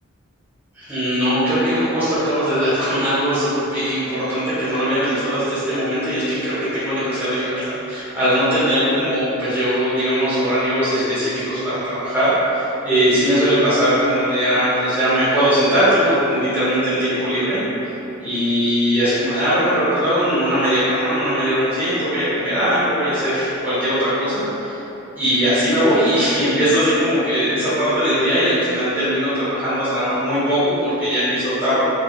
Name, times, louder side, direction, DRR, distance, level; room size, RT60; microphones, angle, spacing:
voice 1, 0.7-17.6 18.2-24.8 25.2-31.8, equal, 10° right, -15 dB, 1.3 m, -20 dB
4.9 x 2.7 x 2.4 m, 3.0 s
head